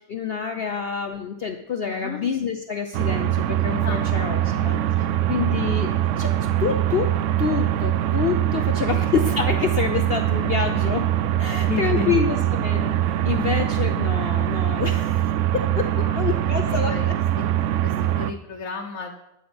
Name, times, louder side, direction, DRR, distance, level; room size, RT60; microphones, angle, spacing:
voice 1, 0.0-4.8 5.3-11.1 11.4-17.1, left 6 dB, 50° left, 6 dB, 0.8 m, -27 dB
voice 2, 1.8-2.2 3.8-4.8 5.1-5.4 8.5-9.1 11.4-12.2 14.0-14.1 14.5-15.0 15.9-17.1 17.4-19.1, left 4 dB, 75° left, 1 dB, 1.4 m, -36 dB
sound 1, 2.9-18.3, right 12 dB, 70° right, 0.9 m, -23 dB
12.0 x 9.0 x 5.2 m, 0.89 s
omnidirectional pair, 1.5 m